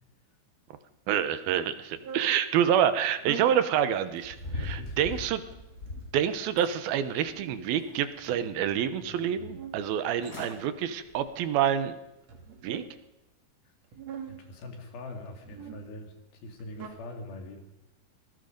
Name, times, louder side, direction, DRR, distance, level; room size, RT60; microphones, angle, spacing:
voice 1, 1.1-5.4 6.1-12.0 12.6-12.8, right 9 dB, 75° right, 11 dB, 2.9 m, -27 dB
sound 1, 1.9-2.4 3.1-3.6 4.3-4.8 5.5-6.2 7.0-8.3 8.8-9.8 10.6-11.5 12.2-12.9 13.8-14.5 15.2-15.8 16.5-16.9, right 7 dB, 50° right, 3.1 m, -44 dB
sound 2, 4.1-6.1 6.6-7.4 7.8-8.6 9.1-9.2 9.9-10.0 10.2-10.6 11.0-11.3 11.8-11.9, left 2 dB, 20° left, 6.9 m, -40 dB
voice 2, 4.5-5.2 14.3-16.1 16.4-17.6, left 2 dB, 75° left, 3 dB, 4.4 m, -43 dB
25.5 x 19.5 x 5.3 m, 0.98 s
omnidirectional pair, 4.4 m